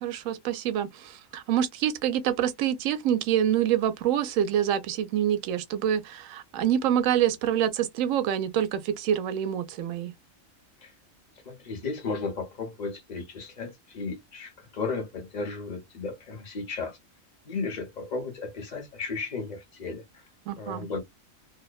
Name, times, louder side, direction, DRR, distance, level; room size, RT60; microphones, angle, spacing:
voice 1, 0.0-10.1 20.5-20.9, right 10 dB, 80° right, 1.0 m, -26 dB
voice 2, 11.4-17.0 17.4-20.3 20.6-21.0, left 4 dB, 35° left, 0.9 m, -34 dB
2.8 x 2.1 x 2.2 m
omnidirectional pair, 1.4 m